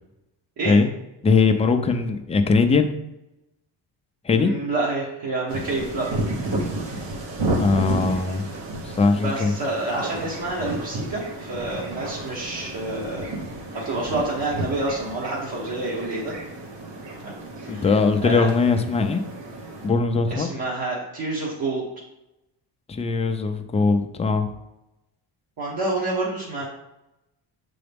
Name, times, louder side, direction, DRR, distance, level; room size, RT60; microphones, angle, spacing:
voice 1, 1.2-3.0 4.2-4.5 7.6-8.5 8.8-9.5 17.7-19.2 19.8-20.5 22.9-24.5, left 4 dB, 15° left, 6 dB, 0.3 m, -20 dB
voice 2, 4.3-6.1 9.2-13.3 13.7-16.3 17.2-17.8 18.2-18.5 20.3-21.9 25.6-26.7, right 2 dB, 55° right, -5 dB, 1.3 m, -28 dB
sound 1, 5.5-19.9, right 2 dB, 75° right, 1.4 m, -32 dB
6.8 x 3.9 x 3.5 m, 0.93 s
cardioid pair, 145°, 43 cm